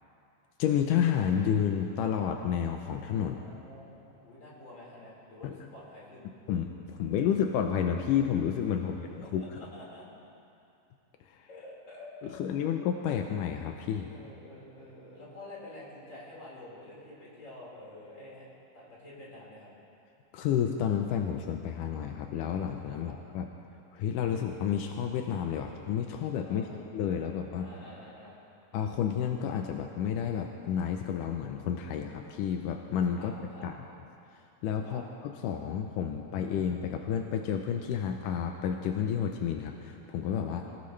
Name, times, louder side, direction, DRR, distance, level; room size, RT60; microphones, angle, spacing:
voice 1, 0.6-3.4 5.4-5.6 6.5-9.4 12.4-14.1 20.3-23.5 23.9-27.7 28.7-33.8 34.6-40.7, left 8 dB, 80° left, 4 dB, 1.9 m, -30 dB
voice 2, 3.2-6.2 8.8-10.0 11.5-12.7 14.1-18.5 18.7-19.7 23.0-23.1 26.4-26.8 27.6-28.4 33.2-33.7 34.8-35.0 40.6-40.7, left 1 dB, 30° left, -7 dB, 5.1 m, -48 dB
24.5 x 17.5 x 3.3 m, 2.7 s
omnidirectional pair, 4.6 m